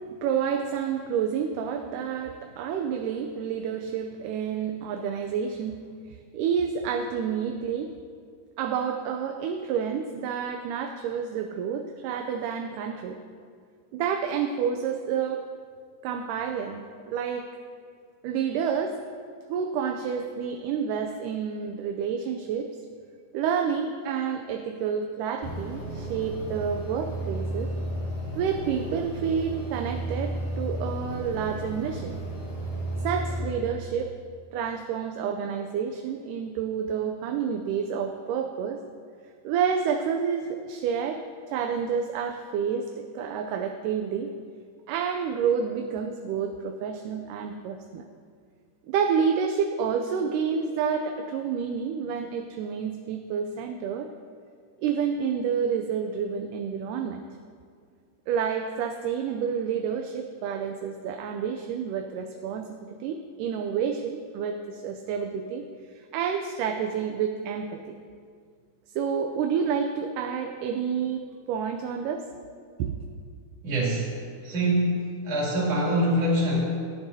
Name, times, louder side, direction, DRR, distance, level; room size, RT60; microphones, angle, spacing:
voice 1, 0.0-5.8 6.1-7.9 8.6-13.2 13.9-15.4 16.0-17.5 18.2-19.0 19.5-22.7 23.3-27.7 28.4-32.2 33.0-34.1 34.5-38.8 39.4-41.2 41.5-44.3 44.9-48.1 48.9-54.1 54.8-57.2 58.3-65.6 66.0-67.9 69.0-72.3 72.8-72.9, right 7 dB, 80° right, 4 dB, 2.1 m, -29 dB
sound 1, 25.4-33.4, right 1 dB, 15° left, 2.4 m, -33 dB
voice 2, 73.6-74.1 74.5-76.7, equal, 50° right, -6 dB, 3.8 m, -24 dB
17.5 x 11.0 x 2.7 m, 2.1 s
omnidirectional pair, 3.8 m